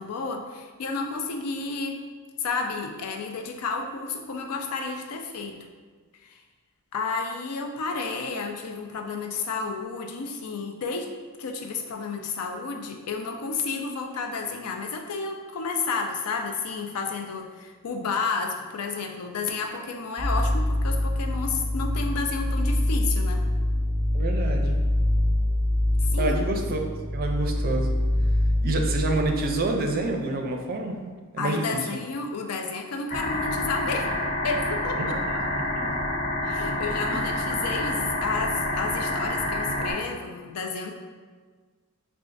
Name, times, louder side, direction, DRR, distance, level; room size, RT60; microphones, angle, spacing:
voice 1, 0.0-2.0 2.4-5.6 6.2-6.4 6.9-11.1 11.4-23.4 26.0-26.4 31.4-34.1 34.4-35.2 36.4-40.9, left 4 dB, 85° left, 3 dB, 0.5 m, -31 dB
sound 1, 20.2-30.1, left 1 dB, 5° left, 0.6 m, -25 dB
voice 2, 24.1-24.8 26.2-26.8 27.1-27.9 28.6-31.0 31.3-31.9 35.0-35.1 35.5-36.0 37.1-37.2, right 2 dB, 45° right, 3 dB, 0.4 m, -28 dB
sound 2, 33.1-39.9, left 1 dB, 40° left, 0.8 m, -28 dB
5.7 x 2.4 x 2.5 m, 1.5 s
head